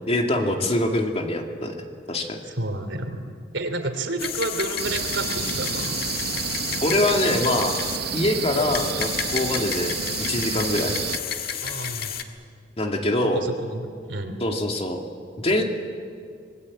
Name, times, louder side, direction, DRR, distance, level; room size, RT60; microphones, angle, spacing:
voice 1, 0.1-1.7 2.1-2.4 6.8-7.8 8.1-10.0 10.3-10.9 12.8-13.4 14.4-15.0 15.4-15.6, left 1 dB, 35° left, 2 dB, 2.5 m, -24 dB
voice 2, 2.5-3.2 3.5-6.0 11.6-12.1 13.3-13.8 14.1-14.4, right 2 dB, 80° right, 7 dB, 3.0 m, -30 dB
sound 1, 4.2-12.2, left 8 dB, 55° left, 1.6 m, -31 dB
sound 2, 4.8-11.2, right 8 dB, 60° right, 0.7 m, -30 dB
26.0 x 21.5 x 8.7 m, 2.2 s
head